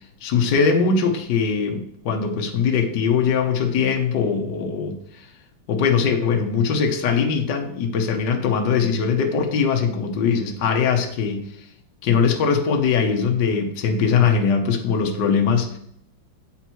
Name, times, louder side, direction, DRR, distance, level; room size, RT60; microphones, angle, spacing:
voice 1, 0.2-5.0 5.7-11.4 12.0-15.8, left 6 dB, 65° left, 3 dB, 1.5 m, -21 dB
7.7 x 5.7 x 4.6 m, 0.70 s
omnidirectional pair, 2.2 m